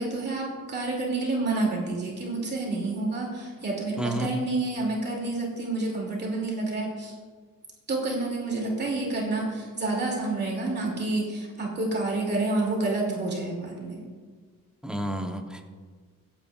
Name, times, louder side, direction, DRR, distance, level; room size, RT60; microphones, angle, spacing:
voice 1, 0.0-7.2 7.9-14.0, right 2 dB, 30° right, -2 dB, 2.4 m, -29 dB
voice 2, 4.0-4.3 14.8-15.7, right 1 dB, ahead, 3 dB, 0.8 m, -30 dB
24.5 x 8.8 x 2.4 m, 1.5 s
cardioid pair, 180°, 34 cm